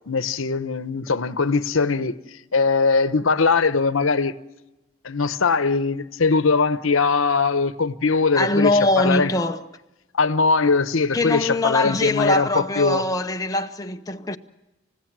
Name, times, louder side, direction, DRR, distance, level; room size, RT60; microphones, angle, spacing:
voice 1, 0.1-2.2 2.5-4.3 5.0-9.3 10.1-13.0, left 4 dB, 85° left, 0.9 m, -21 dB
voice 2, 8.3-9.6 11.1-14.4, left 1 dB, 15° left, 0.7 m, -22 dB
29.5 x 15.5 x 7.4 m
head